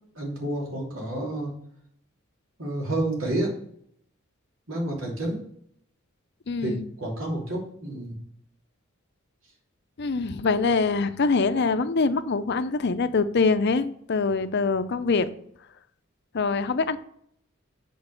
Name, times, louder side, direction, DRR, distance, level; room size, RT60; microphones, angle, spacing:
voice 1, 0.1-1.5 2.6-3.5 4.7-5.4 6.6-8.2, right 1 dB, 75° right, 3.1 m, -29 dB
voice 2, 6.5-6.9 10.0-15.3 16.3-17.0, left 4 dB, 55° left, 0.6 m, -24 dB
8.3 x 4.6 x 6.5 m
head